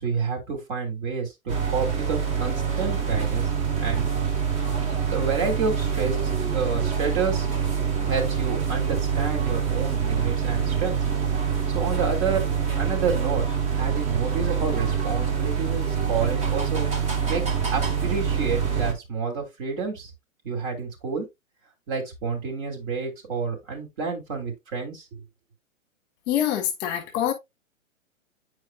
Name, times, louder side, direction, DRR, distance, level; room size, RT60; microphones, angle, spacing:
voice 1, 0.0-3.5 3.8-4.1 5.1-6.2 6.5-7.5 8.0-11.0 11.7-16.9 17.3-17.4 17.7-20.1 20.4-21.3 21.9-25.2, right 5 dB, 40° right, 2.7 m, -29 dB
sound 1, 1.5-18.9, right 7 dB, 15° right, 0.9 m, -25 dB
voice 2, 26.3-27.3, left 10 dB, 30° left, 1.4 m, -25 dB
9.1 x 4.8 x 2.3 m
figure-of-eight pair, 120°, 41 cm